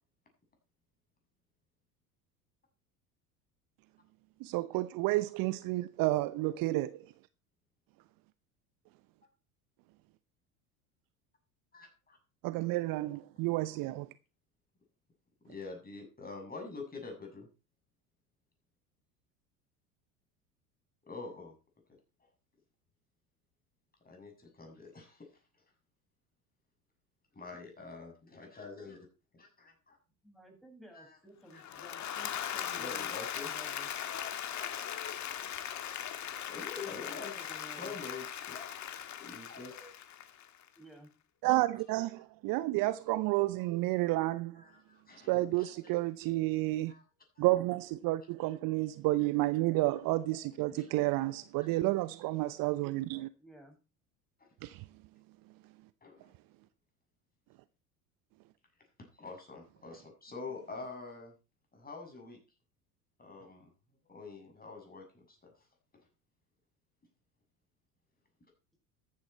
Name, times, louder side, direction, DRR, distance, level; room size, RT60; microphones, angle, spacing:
voice 1, 4.4-7.1 12.4-14.1 41.4-44.6 45.3-46.9 47.4-53.3 54.6-54.8, right 18 dB, 50° right, 0.8 m, -31 dB
voice 2, 11.7-12.2 15.4-17.5 21.1-21.5 24.0-25.3 25.5-25.6 27.3-29.1 29.3-30.0 30.9-31.2 31.5-31.6 32.7-35.3 35.7-40.0 44.6-45.7 46.9-47.0 47.4-47.5 50.7-50.9 51.6-51.7 54.4-54.5 56.0-56.3 59.0-61.3 61.7-62.4 63.2-63.7 64.1-65.7 65.9-66.1, left 4 dB, 20° left, 7.2 m, -47 dB
voice 3, 30.2-33.1 33.4-33.9 36.7-37.9 40.8-41.1 53.4-53.8, right 1 dB, ahead, 7.6 m, -53 dB
Applause / Crowd, 31.5-40.7, left 10 dB, 40° left, 1.8 m, -39 dB
14.5 x 10.5 x 4.4 m
hypercardioid pair, 70°, 45 cm